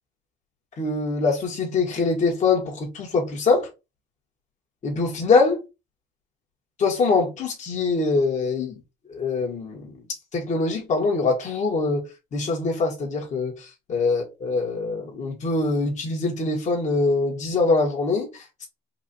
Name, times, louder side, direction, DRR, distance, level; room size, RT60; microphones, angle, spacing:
voice 1, 0.8-3.7 4.8-5.6 6.8-8.8 9.1-9.9 10.3-12.0 12.3-18.7, left 3 dB, 45° left, 1.8 m, -23 dB
4.7 x 2.5 x 4.3 m
cardioid pair, 110°, 17 cm